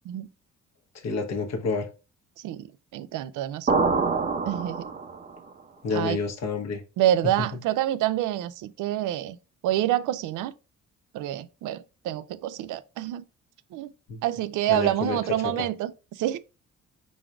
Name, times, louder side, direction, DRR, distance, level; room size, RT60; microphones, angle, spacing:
voice 1, 1.0-1.9 5.8-6.8 14.1-14.2 14.7-15.2 15.4-15.5, left 4 dB, 60° left, 1.1 m, -28 dB
voice 2, 2.4-2.7 2.9-3.7 4.5-4.8 5.9-6.2 7.0-9.4 9.6-10.5 11.1-13.2 13.7-13.9 14.2-16.4, right 13 dB, 80° right, 0.5 m, -27 dB
sound 1, 3.7-5.4, right 4 dB, 30° right, 0.7 m, -25 dB
4.6 x 4.0 x 2.5 m
cardioid pair, 90°, 30 cm